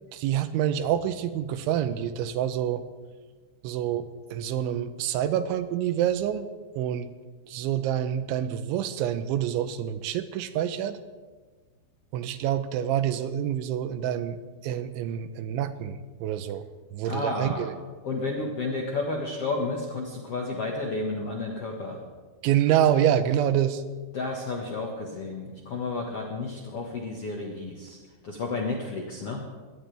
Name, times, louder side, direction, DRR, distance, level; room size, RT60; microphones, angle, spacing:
voice 1, 0.1-2.8 3.6-6.5 6.8-7.1 7.5-11.0 12.1-14.4 14.6-16.6 16.9-17.7 22.4-23.8, right 10 dB, 85° right, 11 dB, 3.2 m, -27 dB
voice 2, 17.1-17.7 18.0-22.0 24.1-28.0 28.2-29.4, left 3 dB, 80° left, -1 dB, 1.3 m, -31 dB
22.0 x 18.0 x 3.4 m, 1.4 s
omnidirectional pair, 5.4 m